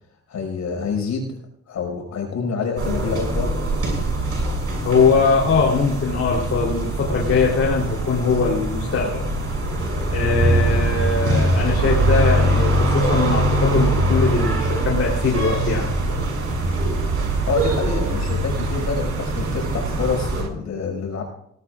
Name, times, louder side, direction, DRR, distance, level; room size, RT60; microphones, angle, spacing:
voice 1, 0.3-1.3 1.7-3.5 17.4-21.2, left 5 dB, 65° left, 2 dB, 5.6 m, -27 dB
sound 1, 2.8-20.4, right 1 dB, 50° right, 6.8 m, -22 dB
voice 2, 4.8-9.2 10.1-15.8, left 5 dB, 50° left, -3 dB, 3.5 m, -21 dB
sound 2, 10.5-20.5, right 6 dB, 70° right, 1.4 m, -31 dB
19.5 x 18.0 x 2.5 m, 0.72 s
cardioid pair, 90°, 30 cm